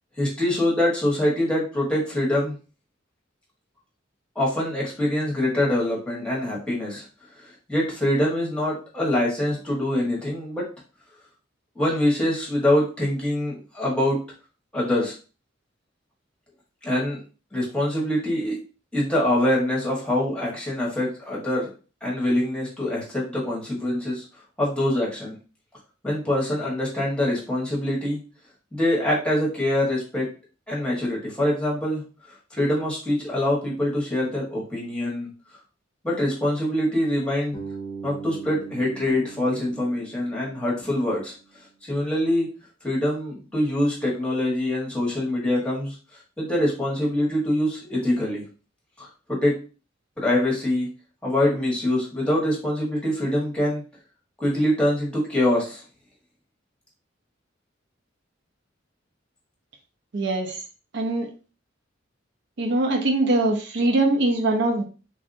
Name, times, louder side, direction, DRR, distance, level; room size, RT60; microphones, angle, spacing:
voice 1, 0.2-2.5 4.3-7.0 7.4-10.6 11.7-14.2 14.7-15.1 16.8-17.2 17.5-18.6 18.9-21.7 22.0-24.2 24.6-25.4 26.0-28.2 28.7-30.3 30.7-32.0 32.5-35.3 36.0-37.6 38.0-41.3 41.8-42.5 42.8-46.0 46.4-48.4 49.0-49.5 50.2-50.9 51.2-53.8 54.4-55.8, left 1 dB, 5° left, -5 dB, 1.2 m, -24 dB
Bass guitar, 37.5-41.5, right 4 dB, 25° left, 0.7 m, -40 dB
voice 2, 60.1-60.6 60.9-61.3 62.6-64.8, right 2 dB, 65° right, 3 dB, 0.6 m, -22 dB
3.2 x 2.7 x 2.6 m, 0.35 s
head